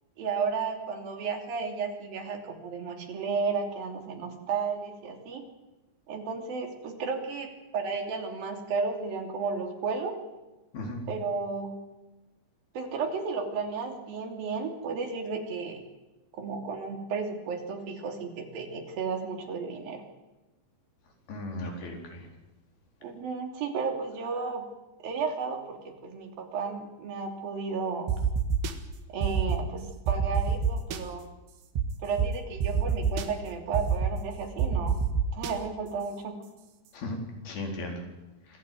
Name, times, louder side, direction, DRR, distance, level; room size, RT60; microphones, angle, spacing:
voice 1, 0.2-5.4 6.1-10.1 11.1-11.8 12.7-15.8 16.3-20.0 23.0-24.7 25.0-28.1 29.1-31.3 32.0-35.0 35.3-36.4, right 5 dB, 65° right, 4 dB, 4.8 m, -33 dB
voice 2, 21.3-22.2 36.9-37.2 37.4-38.0, left 2 dB, 75° left, 2 dB, 6.2 m, -36 dB
sound 1, 28.1-28.7 29.2-29.6 30.1-31.0 31.8-31.9 32.2-32.3 32.6-33.3 33.7-34.1 34.6-35.5, right 7 dB, 85° right, 3.7 m, -26 dB
25.5 x 16.5 x 9.5 m, 1.1 s
omnidirectional pair, 4.4 m